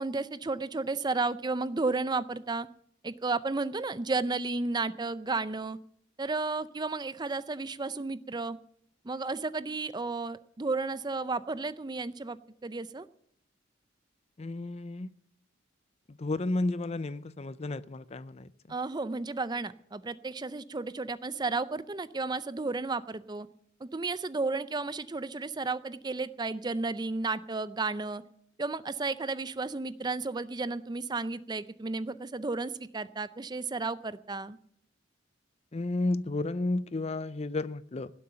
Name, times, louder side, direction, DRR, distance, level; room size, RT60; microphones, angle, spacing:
voice 1, 0.0-2.7 3.0-5.8 6.2-8.6 9.0-13.1 18.7-23.5 23.8-28.2 28.6-34.6, right 3 dB, 20° right, 16 dB, 0.5 m, -33 dB
voice 2, 14.4-15.1 16.1-18.5 35.7-38.1, left 2 dB, 30° left, 17 dB, 0.5 m, -32 dB
17.5 x 7.8 x 8.7 m, 0.69 s
head